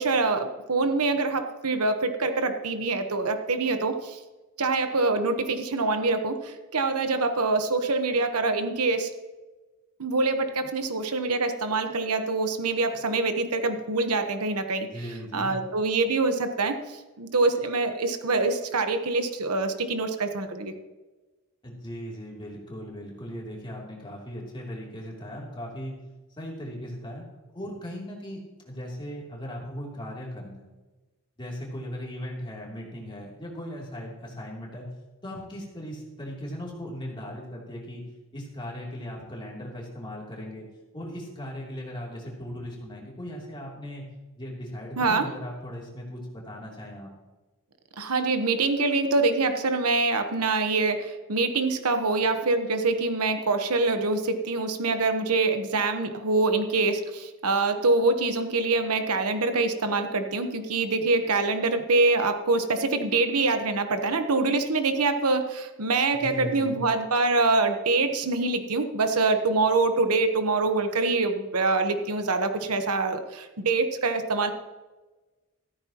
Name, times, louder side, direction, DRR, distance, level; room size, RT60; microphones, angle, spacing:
voice 1, 0.0-4.2 4.6-9.1 10.0-14.9 15.3-20.7 45.0-45.3 48.0-74.5, right 3 dB, 90° right, 7 dB, 1.1 m, -25 dB
voice 2, 14.9-15.5 21.6-26.0 26.4-27.2 27.5-28.4 28.6-30.7 31.4-34.9 35.2-38.0 38.3-40.7 40.9-44.1 44.4-47.1 66.2-66.8, equal, 20° left, -3 dB, 3.0 m, -38 dB
14.0 x 13.0 x 3.0 m, 1.2 s
head